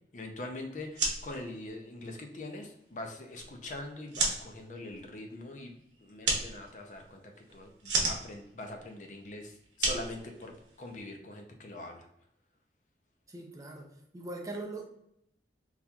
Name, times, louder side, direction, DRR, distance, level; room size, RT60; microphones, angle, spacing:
voice 1, 0.1-7.2 7.5-12.1, left 1 dB, 45° left, 3 dB, 0.5 m, -43 dB
sound 1, 0.8-11.0, right 3 dB, 90° right, 0.9 m, -36 dB
voice 2, 13.3-14.9, right 2 dB, 20° right, 1 dB, 0.4 m, -41 dB
4.0 x 2.8 x 2.3 m, 0.78 s
head